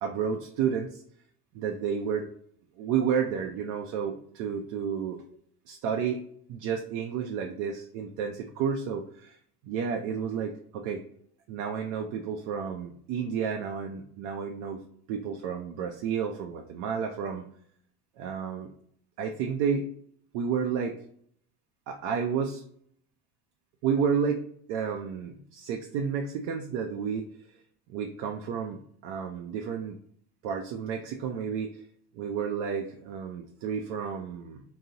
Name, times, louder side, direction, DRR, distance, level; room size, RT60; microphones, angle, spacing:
voice 1, 0.0-1.0 1.5-2.3 2.8-5.2 5.7-6.2 6.5-9.4 9.6-11.0 11.5-14.8 15.1-17.5 18.2-18.7 19.2-19.8 20.3-20.9 21.9-22.6 23.8-27.3 27.9-30.0 30.4-31.7 32.2-34.6, right 7 dB, 70° right, 3 dB, 0.5 m, -31 dB
3.8 x 2.0 x 2.7 m, 0.63 s
cardioid pair, 145°, 34 cm